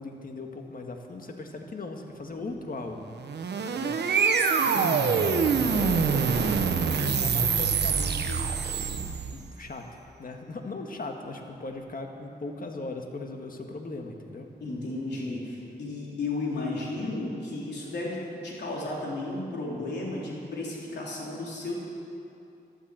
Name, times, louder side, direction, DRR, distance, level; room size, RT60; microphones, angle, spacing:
voice 1, 0.0-3.0 3.7-4.0 4.6-6.3 6.9-8.4 9.3-9.9 10.2-14.5, left 3 dB, 55° left, 3 dB, 1.8 m, -38 dB
sound 1, 3.1-9.5, right 5 dB, 80° right, 1.0 m, -25 dB
voice 2, 14.6-21.7, left 2 dB, 85° left, -4 dB, 3.6 m, -33 dB
13.0 x 12.5 x 7.7 m, 2.7 s
cardioid pair, 75°, 17 cm